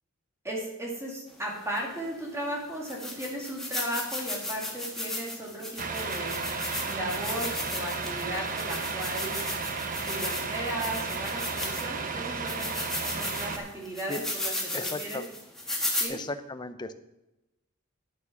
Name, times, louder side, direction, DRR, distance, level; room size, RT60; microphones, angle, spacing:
voice 1, 0.4-6.4 6.9-9.4 10.0-15.2 16.0-16.2, right 1 dB, 15° right, -3 dB, 2.2 m, -36 dB
sound 1, 1.8-1.9 2.4-2.5 2.9-12.0 12.5-16.1, left 1 dB, ahead, 1.6 m, -35 dB
Truck, 5.8-13.6, right 4 dB, 40° right, 1.0 m, -33 dB
voice 2, 14.7-15.3 16.1-16.9, left 2 dB, 20° left, 11 dB, 0.5 m, -35 dB
9.9 x 7.1 x 5.9 m, 0.94 s
head